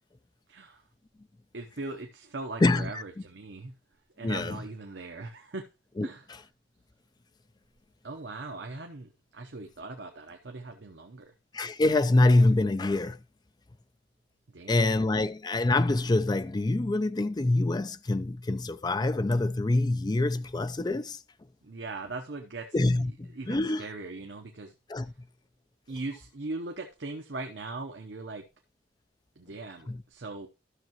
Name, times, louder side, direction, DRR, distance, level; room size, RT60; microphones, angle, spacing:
voice 1, 0.5-0.8 1.5-3.8 4.2-5.7 6.0-6.3 8.0-11.3 14.5-14.9 21.6-24.7 25.9-28.5 29.4-30.5, right 3 dB, 70° right, 0.9 m, -40 dB
voice 2, 4.2-4.6 6.0-6.1 11.5-13.2 14.7-21.2 22.7-23.8 24.9-25.1 29.9-30.0, left 2 dB, 25° left, 0.4 m, -25 dB
13.0 x 6.5 x 3.0 m
head